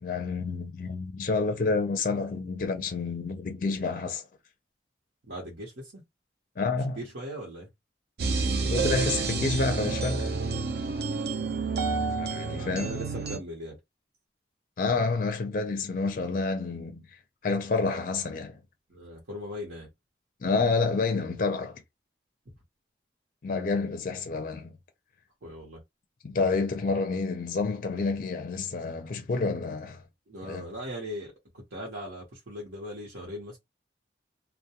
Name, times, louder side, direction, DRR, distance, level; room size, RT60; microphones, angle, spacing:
voice 1, 0.0-4.2 6.6-7.0 8.7-10.3 12.2-12.9 14.8-17.2 17.4-18.6 20.4-21.8 23.4-24.8 26.2-30.0 30.4-30.6, left 3 dB, 45° left, 0.4 m, -29 dB
voice 2, 5.3-6.0 7.0-7.7 11.9-12.2 12.5-13.8 18.9-19.9 25.4-25.8 30.3-33.6, equal, 75° right, 0.9 m, -39 dB
sound 1, 8.2-13.4, right 4 dB, 55° right, 0.5 m, -29 dB
2.2 x 2.1 x 2.8 m
head